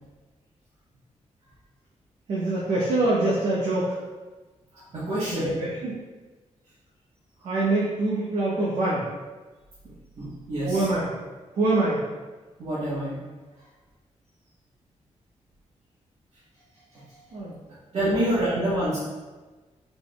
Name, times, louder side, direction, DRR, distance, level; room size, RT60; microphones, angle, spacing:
voice 1, 2.3-4.0 5.3-6.0 7.4-9.0 10.6-11.1 11.5-12.0 17.3-17.6 18.1-18.2, right 2 dB, 80° right, -7 dB, 0.8 m, -24 dB
voice 2, 4.7-5.5 10.2-10.9 12.6-13.2 16.9-17.4 17.9-19.0, right 1 dB, 60° right, -12 dB, 1.3 m, -27 dB
4.2 x 3.5 x 2.3 m, 1.3 s
cardioid pair, 100°, 12 cm